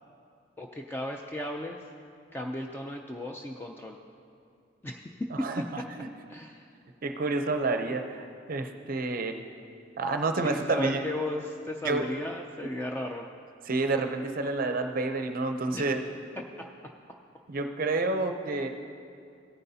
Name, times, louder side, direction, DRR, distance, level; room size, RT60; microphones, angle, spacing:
voice 1, 0.6-1.8 2.3-4.0 4.8-5.5 5.9-6.0 6.3-6.6 10.4-13.2 15.7-15.9 16.6-16.7, left 1 dB, 10° left, 1 dB, 0.4 m, -35 dB
voice 2, 5.3-6.1 7.0-9.4 10.0-11.0 11.8-12.1 13.7-16.0 17.5-18.7, right 3 dB, 50° right, 6 dB, 0.5 m, -29 dB
16.5 x 9.5 x 2.7 m, 2.5 s
head